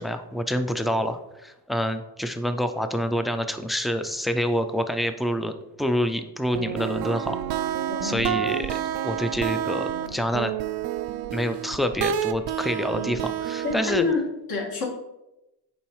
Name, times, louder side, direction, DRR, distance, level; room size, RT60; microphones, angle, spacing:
voice 1, 0.0-7.7 8.0-8.7 9.0-10.5 11.3-14.1, equal, ahead, 8 dB, 0.3 m, -27 dB
sound 1, 6.5-14.1, right 10 dB, 70° right, 0.5 m, -29 dB
voice 2, 7.9-8.3 13.6-14.8, left 4 dB, 65° left, -3 dB, 1.8 m, -28 dB
7.2 x 4.6 x 3.0 m, 0.94 s
cardioid pair, 105°, 40 cm